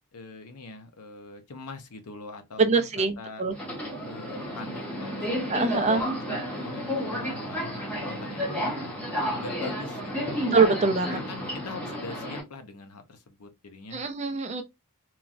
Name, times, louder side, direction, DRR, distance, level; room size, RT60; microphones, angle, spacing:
voice 1, 0.1-3.4 4.0-8.6 9.3-10.5 11.1-14.0, left 3 dB, 85° left, 0.6 m, -43 dB
voice 2, 2.6-3.5 5.5-6.0 10.5-11.2 13.9-14.6, right 4 dB, 30° right, 0.4 m, -23 dB
Subway metro underground, 3.5-12.4, equal, 5° left, 0.7 m, -32 dB
3.0 x 2.3 x 2.5 m
head